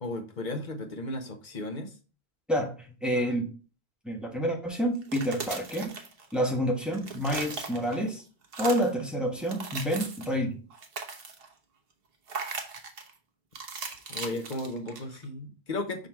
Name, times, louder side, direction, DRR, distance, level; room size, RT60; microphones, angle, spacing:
voice 1, 0.0-1.9 3.1-3.4 14.1-16.1, left 2 dB, 50° left, 5 dB, 1.1 m, -35 dB
voice 2, 3.0-3.5 4.0-5.9 6.3-8.2 8.6-10.6, equal, ahead, 0 dB, 1.3 m, -28 dB
sound 1, 5.0-6.5 6.8-8.1 8.4-9.0 9.4-10.4 10.7-11.5 12.3-13.1 13.6-15.3, right 5 dB, 65° right, 1.1 m, -38 dB
5.8 x 3.9 x 4.5 m, 0.35 s
omnidirectional pair, 1.0 m